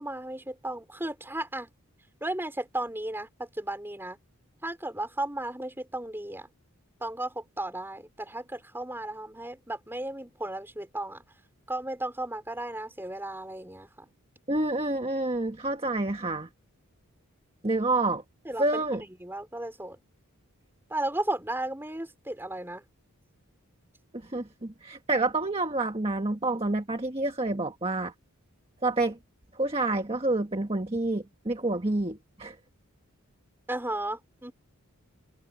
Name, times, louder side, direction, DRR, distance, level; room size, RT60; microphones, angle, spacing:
voice 1, 0.0-1.7 2.2-4.2 4.6-6.5 7.0-11.2 11.7-14.1 18.4-20.0 20.9-22.8 33.7-34.5, right 1 dB, 10° right, 4.8 m, -34 dB
voice 2, 14.5-16.5 17.6-18.2 18.6-19.0 24.3-28.1 28.8-29.2 29.6-32.5, right 2 dB, 25° right, 1.5 m, -28 dB
head